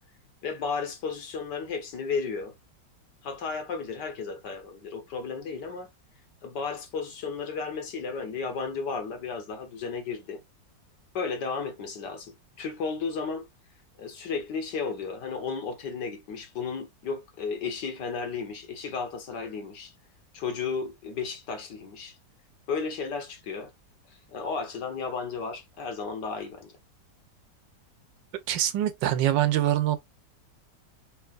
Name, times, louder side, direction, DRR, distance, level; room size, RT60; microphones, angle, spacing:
voice 1, 0.4-2.5 3.2-5.9 6.4-10.4 11.1-13.5 14.0-19.9 20.3-22.2 22.7-23.7 24.3-26.7, left 5 dB, 70° left, 1.9 m, -33 dB
voice 2, 28.5-30.0, right 12 dB, 90° right, 1.5 m, -24 dB
4.7 x 4.7 x 2.4 m
omnidirectional pair, 2.0 m